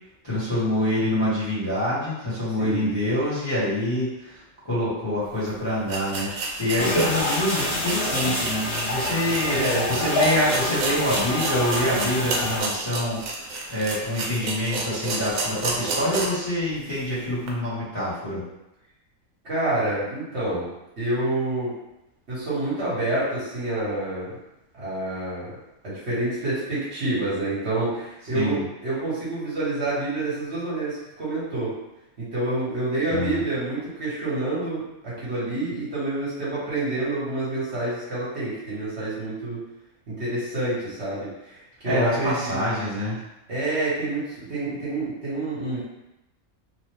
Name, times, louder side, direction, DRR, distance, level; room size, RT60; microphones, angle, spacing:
voice 1, 0.2-4.4 4.6-9.6 9.9-13.2 13.7-18.4 28.3-28.6 33.1-33.4 41.8-43.2, left 1 dB, 20° left, -12 dB, 1.0 m, -26 dB
sound 1, 5.3-5.4 5.9-16.5 16.8-16.9 17.4-17.5, right 3 dB, 85° right, 1.1 m, -31 dB
sound 2, 6.8-12.6, left 1 dB, 50° left, 1.2 m, -26 dB
voice 2, 9.5-9.9 19.4-20.7 21.0-21.7 22.3-24.3 24.7-25.5 25.8-31.7 32.2-39.6 40.1-42.6 43.5-45.8, right 2 dB, 50° right, -9 dB, 1.3 m, -28 dB
3.1 x 2.0 x 3.2 m, 0.93 s
omnidirectional pair, 1.5 m